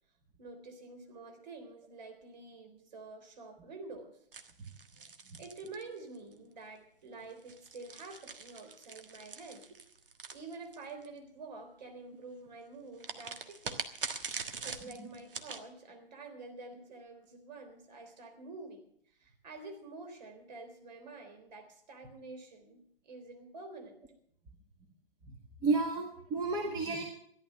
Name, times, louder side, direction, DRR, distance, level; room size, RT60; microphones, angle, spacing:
voice 1, 0.4-4.2 5.4-9.7 10.3-13.9 14.6-24.0, right 3 dB, 45° right, 5 dB, 3.7 m, -48 dB
sound 1, 4.3-6.3 7.3-11.1 13.0-15.7, right 5 dB, 65° right, 1.5 m, -43 dB
voice 2, 25.6-27.0, right 3 dB, 15° right, 1 dB, 1.6 m, -32 dB
14.5 x 11.5 x 6.5 m, 0.67 s
figure-of-eight pair, 130°, 30 cm